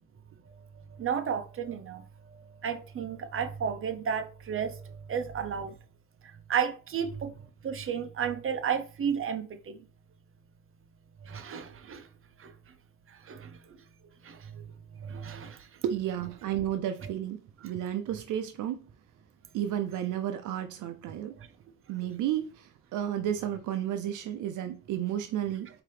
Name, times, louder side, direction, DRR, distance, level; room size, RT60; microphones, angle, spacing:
voice 1, 1.0-5.7 6.5-7.3 7.6-9.8 11.2-12.0 12.4-12.5 13.2-13.6 14.2-14.7 15.0-15.6 17.0-17.1, right 7 dB, 45° right, 0.8 m, -33 dB
voice 2, 15.8-18.8 19.5-21.4 21.9-25.7, right 11 dB, 75° right, 0.6 m, -32 dB
4.6 x 2.8 x 3.3 m
cardioid pair, 80°, 31 cm